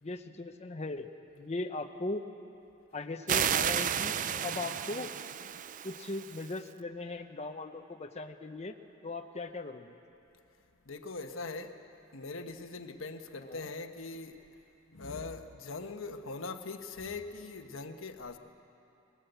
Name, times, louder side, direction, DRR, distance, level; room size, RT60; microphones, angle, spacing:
voice 1, 0.0-1.1 1.4-2.2 2.9-5.1 5.8-8.7 9.0-10.0 13.4-13.7, left 2 dB, 35° left, 5 dB, 0.8 m, -38 dB
sound 1, 3.3-6.6, right 9 dB, 40° right, 0.4 m, -32 dB
voice 2, 10.8-11.8 12.1-14.4 14.9-18.4, left 3 dB, 90° left, 6 dB, 1.2 m, -41 dB
21.0 x 18.5 x 8.0 m, 2.8 s
head